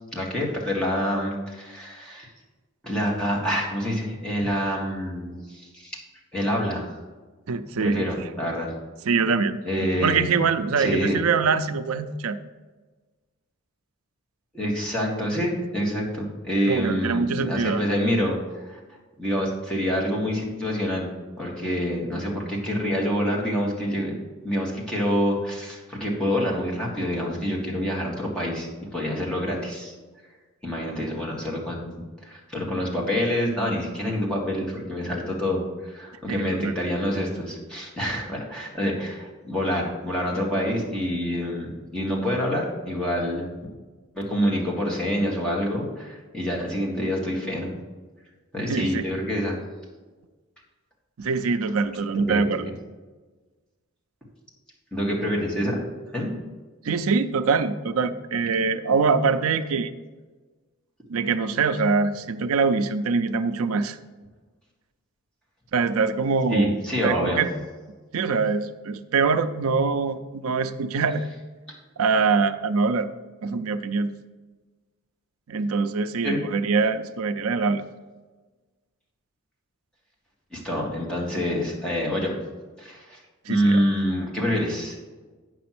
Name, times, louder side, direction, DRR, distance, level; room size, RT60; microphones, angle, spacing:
voice 1, 0.1-2.3 2.8-6.0 6.3-7.0 7.8-8.7 9.6-10.3 10.8-11.2 14.5-18.4 18.7-18.8 19.2-21.1 21.4-24.1 24.4-29.9 30.6-43.5 44.2-47.7 48.5-49.6 52.2-52.7 54.9-55.8 56.1-56.3 66.5-67.4 76.2-76.4 80.5-82.3 82.8-83.2 83.5-85.0, equal, 5° left, -4 dB, 1.9 m, -27 dB
voice 2, 7.5-8.1 9.1-12.4 16.7-17.8 36.3-36.7 48.6-49.1 51.2-52.7 56.8-59.9 61.1-64.0 65.7-66.7 67.0-67.5 68.1-71.3 72.0-73.1 73.4-74.1 75.5-77.8 83.5-83.8, right 4 dB, 90° right, 11 dB, 0.5 m, -24 dB
8.5 x 6.1 x 6.0 m, 1.3 s
head